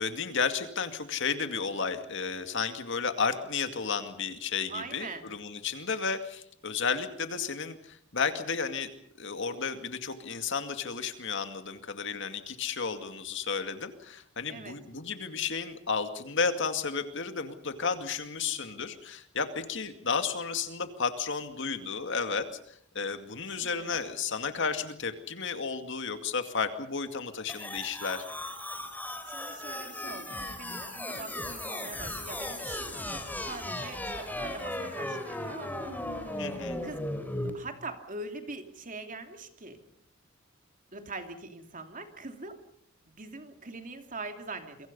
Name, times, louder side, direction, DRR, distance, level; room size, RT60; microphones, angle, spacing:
voice 1, 0.0-8.9 9.2-28.2 36.4-36.8, left 5 dB, 65° left, 8 dB, 2.3 m, -32 dB
voice 2, 4.7-5.3 14.5-14.8 23.5-24.0 29.3-35.9 36.2-37.0 37.5-39.8 40.9-42.6 43.1-44.9, right 3 dB, 40° right, 6 dB, 2.9 m, -43 dB
sound 1, 27.5-37.5, left 1 dB, 10° left, 3.9 m, -36 dB
28.0 x 24.0 x 5.5 m, 0.67 s
head